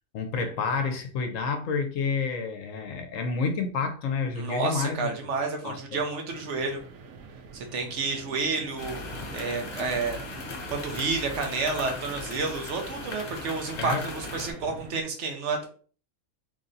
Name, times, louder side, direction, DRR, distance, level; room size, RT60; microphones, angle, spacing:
voice 1, 0.1-5.1 5.6-6.0 13.8-14.0, left 5 dB, 70° left, 1.0 m, -29 dB
voice 2, 4.4-6.8 7.5-9.0 9.3-10.2 10.7-15.7, right 4 dB, 60° right, 1.1 m, -30 dB
sound 1, 6.2-15.0, right 5 dB, 85° right, 1.1 m, -45 dB
sound 2, 8.8-14.5, left 3 dB, 45° left, 0.7 m, -38 dB
3.2 x 2.6 x 3.7 m
omnidirectional pair, 1.5 m